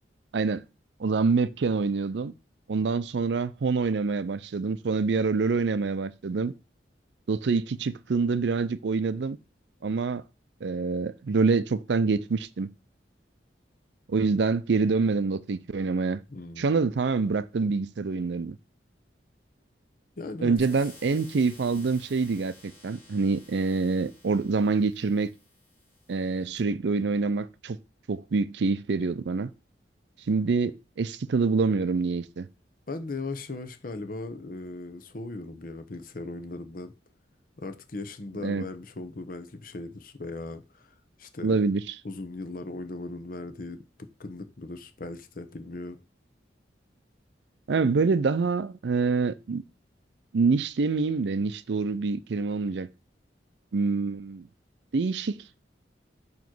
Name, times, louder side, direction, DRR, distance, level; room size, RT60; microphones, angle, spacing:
voice 1, 1.0-2.3 2.7-6.5 7.3-9.4 9.8-10.2 10.6-12.7 14.1-16.2 16.6-18.6 20.4-25.3 26.1-27.8 28.1-29.5 30.3-32.5 38.4-38.7 41.4-41.8 47.7-49.6 50.3-52.9 53.7-54.5 54.9-55.4, right 4 dB, 70° right, 0.5 m, -26 dB
voice 2, 16.3-16.8 20.2-20.6 32.9-36.9 37.6-40.9 41.2-41.6 42.0-46.0, left 2 dB, 50° left, 0.8 m, -38 dB
sound 1, 20.6-26.6, left 1 dB, 10° left, 2.8 m, -53 dB
7.0 x 3.1 x 6.0 m
head